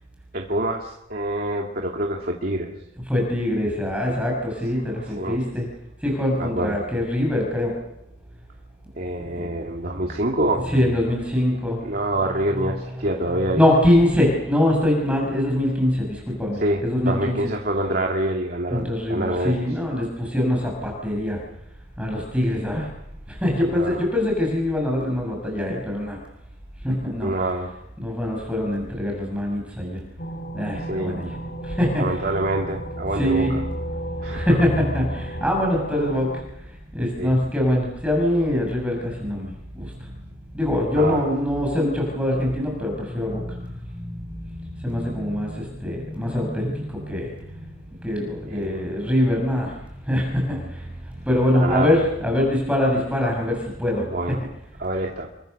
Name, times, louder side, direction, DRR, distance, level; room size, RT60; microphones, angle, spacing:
voice 1, 0.3-2.7 5.2-5.4 6.4-6.7 9.0-10.6 11.8-13.6 16.6-19.6 23.7-24.0 27.2-27.7 30.9-31.2 32.0-33.4 34.2-34.5 37.2-37.3 40.9-41.2 48.5-48.8 51.6-51.9 54.1-54.4 54.8-55.3, right 1 dB, 50° right, 0 dB, 2.7 m, -26 dB
voice 2, 3.1-5.7 6.0-7.8 9.3-9.5 9.8-10.1 10.6-17.5 18.7-21.4 22.0-22.9 23.3-26.2 26.8-27.3 28.0-30.0 30.5-31.4 31.6-32.3 33.1-33.5 34.2-40.1 40.5-47.7 48.0-49.8 50.0-54.4, left 1 dB, 5° right, 0 dB, 6.7 m, -24 dB
sound 1, 30.2-36.4, right 1 dB, 50° left, 2.5 m, -34 dB
29.0 x 24.0 x 6.8 m, 0.85 s
head